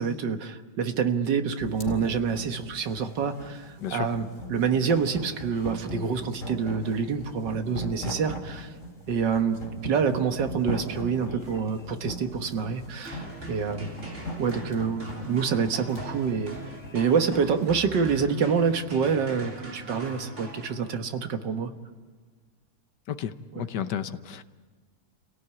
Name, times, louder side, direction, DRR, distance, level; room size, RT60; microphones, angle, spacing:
voice 1, 0.0-8.7 9.1-13.9 14.4-16.6 16.9-21.7 23.5-23.7, right 6 dB, 85° right, 7 dB, 2.0 m, -27 dB
sound 1, 1.6-17.9, left 1 dB, 45° left, 4.6 m, -39 dB
sound 2, 13.1-21.2, right 1 dB, 40° right, 3.6 m, -42 dB
voice 2, 23.6-24.4, left 9 dB, 75° left, 11 dB, 1.6 m, -32 dB
29.5 x 17.5 x 9.7 m, 1.5 s
omnidirectional pair, 1.9 m